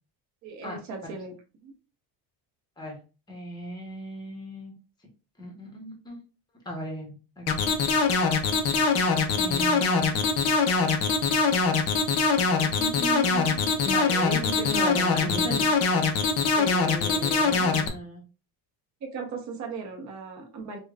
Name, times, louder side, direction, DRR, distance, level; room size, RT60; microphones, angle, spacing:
voice 1, 0.4-1.3 1.6-1.7 19.0-20.8, right 4 dB, 40° right, 2 dB, 0.8 m, -37 dB
voice 2, 3.3-4.7 5.4-6.2 6.6-7.6 9.3-10.2 12.6-16.2 16.6-18.2, equal, 10° left, 0 dB, 0.8 m, -36 dB
sound 1, 7.5-17.9, left 4 dB, 35° left, 0.4 m, -23 dB
5.0 x 2.2 x 2.3 m, 0.33 s
cardioid pair, 180°, 46 cm